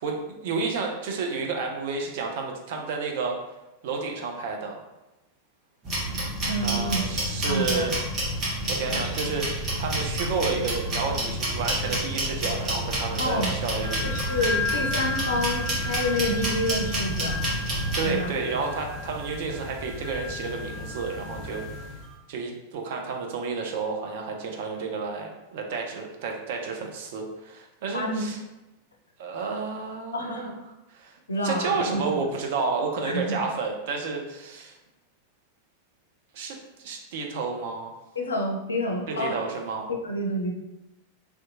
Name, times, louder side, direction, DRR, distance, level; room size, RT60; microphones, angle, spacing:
voice 1, 0.0-3.4 3.8-4.8 6.6-8.0 8.7-14.2 18.0-22.0 22.3-28.4 29.2-30.5 30.9-31.2 31.4-34.8 36.3-37.9 39.1-39.9, right 4 dB, 50° right, 2 dB, 0.4 m, -31 dB
sound 1, 5.8-18.1, right 1 dB, 30° right, 0.9 m, -29 dB
voice 2, 6.5-7.1 7.5-7.9 13.2-13.5 14.0-17.5 18.0-18.3 27.9-28.2 30.1-30.5 31.3-32.0 33.0-33.4 38.2-39.4 40.0-40.5, equal, 75° left, 1 dB, 0.4 m, -28 dB
sound 2, 13.8-22.1, left 3 dB, 10° left, 1.1 m, -34 dB
2.6 x 2.2 x 2.6 m, 0.96 s
figure-of-eight pair, 90°, 0 cm